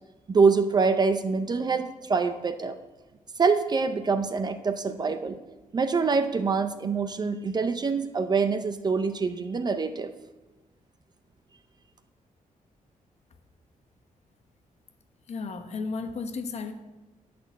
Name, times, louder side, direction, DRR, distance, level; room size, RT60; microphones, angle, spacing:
voice 1, 0.3-2.8 3.4-5.4 5.7-10.1, right 4 dB, 30° right, 10 dB, 0.5 m, -25 dB
voice 2, 15.3-16.7, left 4 dB, 50° left, 7 dB, 1.1 m, -33 dB
10.5 x 6.2 x 8.3 m, 1.1 s
wide cardioid pair, 180°, 15 cm